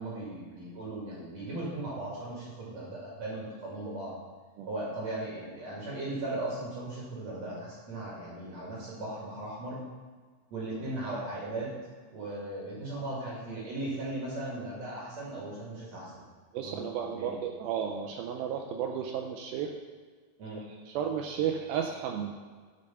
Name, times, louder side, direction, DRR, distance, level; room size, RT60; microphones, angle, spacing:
voice 1, 0.0-4.1 4.7-9.8 10.5-11.7 12.1-16.2 16.6-17.3 20.4-20.6, right 2 dB, 50° right, -4 dB, 2.5 m, -37 dB
voice 2, 16.5-19.7 20.6-22.3, right 8 dB, 90° right, 3 dB, 2.1 m, -33 dB
8.3 x 6.5 x 5.5 m, 1.5 s
omnidirectional pair, 4.8 m